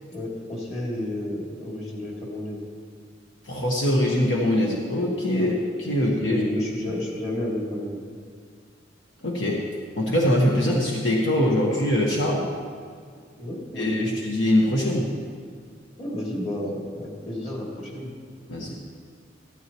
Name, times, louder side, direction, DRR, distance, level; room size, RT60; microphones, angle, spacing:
voice 1, 0.1-2.6 5.3-5.6 5.9-8.0 13.3-14.2 16.0-18.1, left 1 dB, 35° left, -4 dB, 2.9 m, -31 dB
voice 2, 3.5-5.5 5.8-6.4 9.2-9.6 10.0-12.5 13.8-15.1 18.5-18.8, left 1 dB, 70° left, -2 dB, 1.4 m, -23 dB
15.5 x 13.0 x 3.1 m, 2.1 s
head